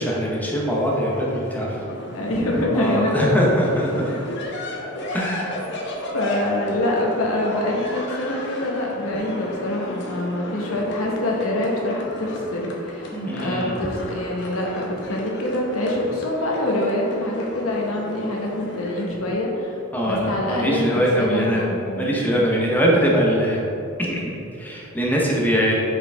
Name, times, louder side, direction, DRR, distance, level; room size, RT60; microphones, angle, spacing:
voice 1, 0.0-1.8 2.7-4.1 5.1-5.6 13.1-13.8 19.9-23.6 24.0-25.7, equal, 10° left, -3 dB, 0.8 m, -22 dB
sound 1, 0.6-19.1, left 1 dB, 55° left, 0.9 m, -34 dB
voice 2, 2.1-3.7 3.9-4.1 5.1-5.2 6.1-22.5, left 1 dB, 85° left, -1 dB, 1.1 m, -25 dB
5.7 x 5.0 x 3.4 m, 2.8 s
head